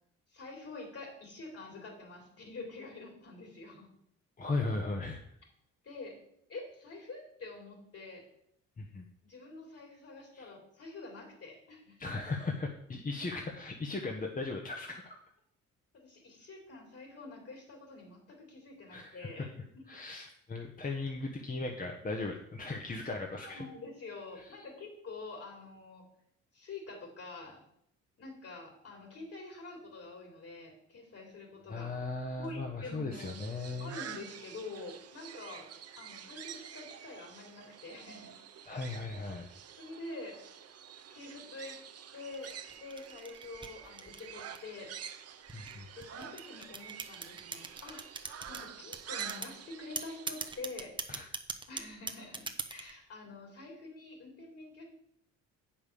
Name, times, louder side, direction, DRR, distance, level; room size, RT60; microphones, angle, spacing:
voice 1, 0.3-3.9 5.8-6.2 6.5-8.2 9.2-12.1 15.9-19.8 23.0-23.1 23.4-26.1 26.5-27.6 28.2-31.9 32.3-33.2 33.8-35.7 36.0-38.4 39.8-40.4 41.1-41.8 42.1-44.9 46.0-50.9 51.7-54.8, left 3 dB, 50° left, 2 dB, 3.9 m, -47 dB
voice 2, 4.4-5.2 8.8-9.0 10.3-10.5 12.0-15.2 18.9-19.4 19.9-23.6 24.3-24.5 31.7-33.9 38.7-39.5 45.5-45.9 51.1-51.3, left 3 dB, 30° left, 1 dB, 1.1 m, -37 dB
saz birds, 33.1-50.6, right 8 dB, 55° right, 0.9 m, -48 dB
sound 1, 42.3-44.8 45.5-48.6 48.9-49.5 50.0-52.9, right 3 dB, 15° right, 0.9 m, -40 dB
8.1 x 5.6 x 6.9 m, 0.72 s
cardioid pair, 90°, 30 cm